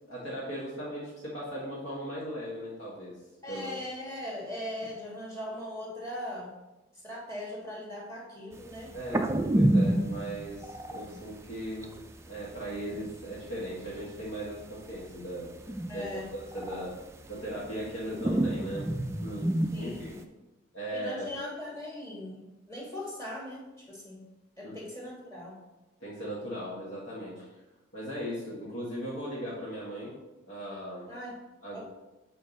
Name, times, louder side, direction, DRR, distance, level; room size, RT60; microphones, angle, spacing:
voice 1, 0.1-3.2 3.5-3.8 8.9-11.9 12.3-17.0 17.3-18.9 19.2-19.5 19.8-20.2 20.7-21.3 24.6-24.8 26.0-27.5 27.9-30.1 30.4-31.1 31.6-31.8, equal, 70° left, -7 dB, 1.6 m, -38 dB
voice 2, 3.4-6.6 7.0-9.0 11.1-11.3 15.9-16.3 19.7-20.0 20.9-24.2 24.6-25.6 31.1-31.4 31.7-31.8, left 1 dB, 15° left, -3 dB, 1.4 m, -40 dB
sound 1, 8.8-11.2 11.5-11.6 11.8-12.1 12.6-13.1 13.4-14.6 15.0-16.1 16.3-17.9 18.1-20.2, right 1 dB, 15° right, 0.3 m, -28 dB
7.6 x 4.5 x 4.0 m, 1.0 s
head